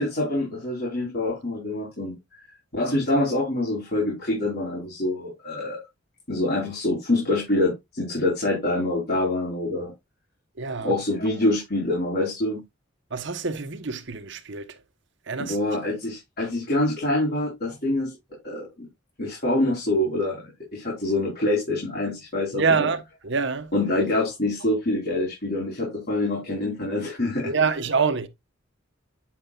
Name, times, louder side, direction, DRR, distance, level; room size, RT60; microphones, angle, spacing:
voice 1, 0.0-2.2 2.7-5.8 6.3-9.9 10.8-12.6 15.4-18.1 18.4-18.9 19.2-22.9 23.7-27.5, left 1 dB, 50° left, 4.6 m, -25 dB
voice 2, 10.6-10.9 13.1-14.8 15.3-15.6 22.5-23.7 27.4-28.3, right 5 dB, 65° right, 1.1 m, -26 dB
9.3 x 7.3 x 2.4 m
head